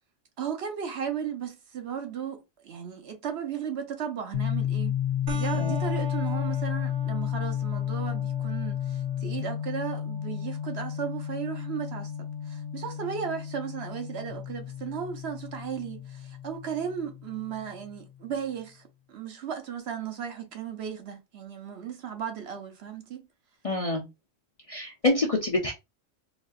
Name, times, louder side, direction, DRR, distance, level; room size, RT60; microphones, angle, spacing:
voice 1, 0.4-5.0 5.3-12.1 12.4-18.8 19.1-23.3, right 8 dB, 60° right, 0.9 m, -35 dB
sound 1, 4.3-18.0, left 10 dB, 75° left, 1.0 m, -32 dB
sound 2, 5.3-14.3, right 2 dB, 80° right, 1.2 m, -45 dB
voice 2, 23.6-24.1 24.7-25.7, left 2 dB, 40° left, 0.5 m, -26 dB
4.1 x 2.7 x 2.3 m
omnidirectional pair, 1.3 m